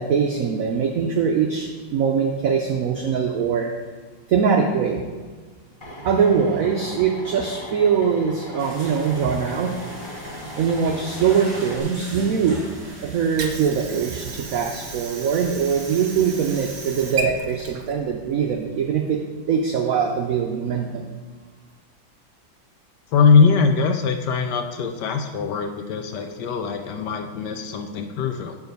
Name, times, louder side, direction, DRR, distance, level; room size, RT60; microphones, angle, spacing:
voice 1, 0.0-3.7 4.3-5.0 6.0-9.7 10.6-12.6 13.0-19.2 19.5-21.1, right 6 dB, 80° right, 3 dB, 0.7 m, -22 dB
Drill, 5.8-11.8, equal, 30° left, 0.5 m, -38 dB
sound 1, 8.6-17.2, right 1 dB, 20° right, 1.8 m, -40 dB
Water / Sink (filling or washing), 12.9-18.9, right 4 dB, 55° right, 1.2 m, -35 dB
voice 2, 23.1-28.6, left 5 dB, 75° left, 6 dB, 1.1 m, -21 dB
7.7 x 4.7 x 5.2 m, 1.4 s
omnidirectional pair, 2.2 m